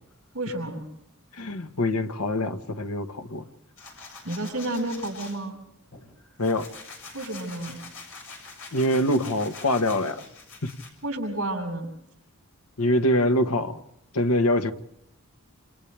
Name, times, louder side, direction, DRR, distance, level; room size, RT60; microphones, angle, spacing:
voice 1, 0.3-0.8 4.2-5.6 7.1-7.8 11.0-11.9, right 1 dB, 70° right, 1 dB, 7.8 m, -31 dB
voice 2, 1.3-3.4 6.4-6.7 8.7-10.3 10.6-10.7 12.8-13.8 14.1-14.7, left 1 dB, 85° left, 7 dB, 1.6 m, -24 dB
sound 1, 3.8-5.4 5.9-10.9, left 4 dB, 65° left, 7.3 m, -44 dB
29.0 x 28.0 x 3.5 m, 0.77 s
head